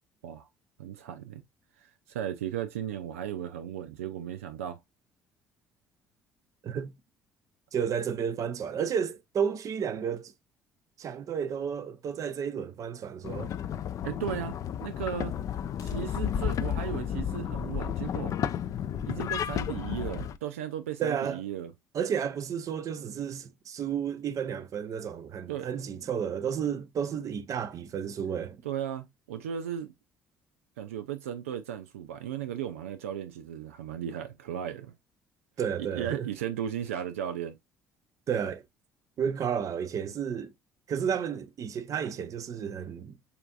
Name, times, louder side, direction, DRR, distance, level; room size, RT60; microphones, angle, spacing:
voice 1, 0.8-1.4 1.8-4.8 14.0-15.4 15.8-18.3 19.1-21.7 25.5-25.7 28.6-29.9 30.8-34.9 35.9-37.6, right 10 dB, 85° right, 0.4 m, -36 dB
voice 2, 7.7-10.3 11.0-13.5 21.0-21.4 21.9-28.6 35.6-36.3 38.3-38.6 39.2-40.5 40.9-43.1, right 7 dB, 50° right, 0.7 m, -32 dB
sound 1, 13.2-20.4, left 9 dB, 50° left, 0.5 m, -32 dB
6.9 x 2.6 x 2.3 m
hypercardioid pair, 60°, 7 cm